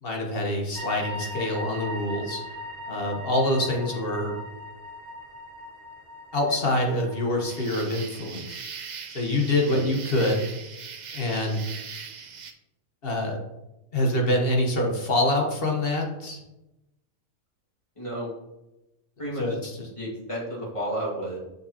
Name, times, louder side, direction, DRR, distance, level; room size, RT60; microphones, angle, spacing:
voice 1, 0.0-2.4 2.9-4.3 6.3-8.6 9.1-10.4 11.1-11.6 13.0-13.4 13.9-16.4 19.4-19.7, left 1 dB, 45° left, 1 dB, 1.2 m, -25 dB
sound 1, 0.7-7.6, left 1 dB, 90° right, 2.2 m, -39 dB
sound 2, 7.5-12.5, right 6 dB, 60° right, 0.4 m, -40 dB
voice 2, 18.0-18.3 19.2-19.5 20.0-21.4, right 1 dB, 20° left, -5 dB, 2.0 m, -32 dB
6.9 x 6.6 x 2.8 m, 0.97 s
omnidirectional pair, 1.5 m